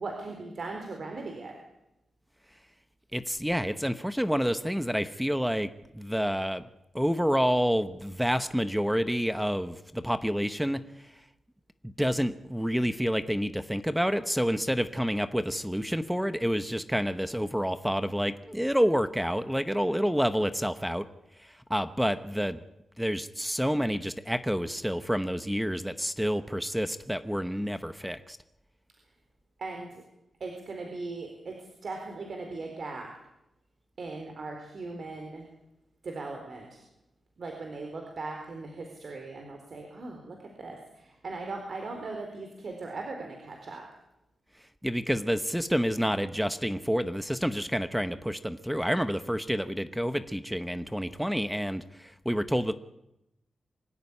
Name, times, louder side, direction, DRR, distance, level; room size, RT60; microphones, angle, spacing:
voice 1, 0.0-1.6 29.6-30.0 30.4-33.1 34.0-35.4 36.0-36.8 37.4-43.9, right 3 dB, 55° right, 3 dB, 4.0 m, -39 dB
voice 2, 3.1-6.6 6.9-10.8 11.8-21.0 21.4-22.6 23.0-28.4 44.8-52.7, equal, ahead, 12 dB, 1.0 m, -28 dB
25.0 x 14.0 x 9.9 m, 0.88 s
wide cardioid pair, 110°, 0 cm